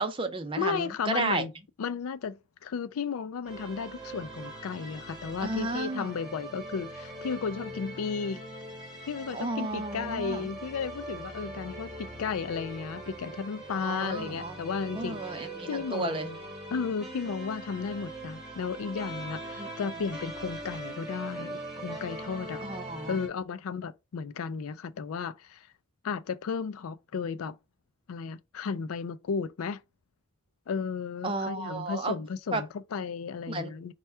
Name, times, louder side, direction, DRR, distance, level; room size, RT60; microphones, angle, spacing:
voice 1, 0.0-1.4 5.4-6.1 9.3-10.5 13.7-14.6 14.9-16.3 19.6-19.7 22.6-23.2 31.2-32.1 32.5-32.6 33.5-33.7, right 2 dB, 25° right, 0.5 m, -32 dB
voice 2, 0.6-1.5 1.8-8.4 9.1-16.4 16.7-22.6 23.1-25.7 26.0-27.6 28.1-29.8 30.7-33.9, left 5 dB, 85° left, 0.4 m, -34 dB
sound 1, 3.4-23.3, right 1 dB, 5° right, 1.3 m, -41 dB
4.4 x 2.3 x 4.3 m
head